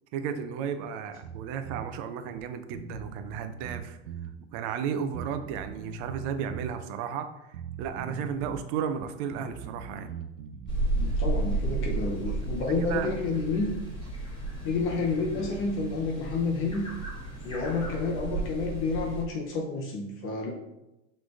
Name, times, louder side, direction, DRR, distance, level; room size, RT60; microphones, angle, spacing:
voice 1, 0.1-4.0 4.5-7.3 7.8-10.1 12.6-13.1, right 7 dB, 40° right, 8 dB, 0.4 m, -34 dB
Bass guitar, 1.2-1.9 2.4-2.5 2.7-4.4 5.1-6.8 7.5-8.7 8.9-10.8, right 6 dB, 80° right, 0.6 m, -41 dB
sound 1, 10.7-19.2, right 2 dB, 10° left, 1.6 m, -33 dB
voice 2, 10.9-13.7 14.6-16.9 17.4-20.5, left 3 dB, 35° left, -1 dB, 0.7 m, -30 dB
6.0 x 3.2 x 2.5 m, 0.95 s
supercardioid pair, 130°, 37 cm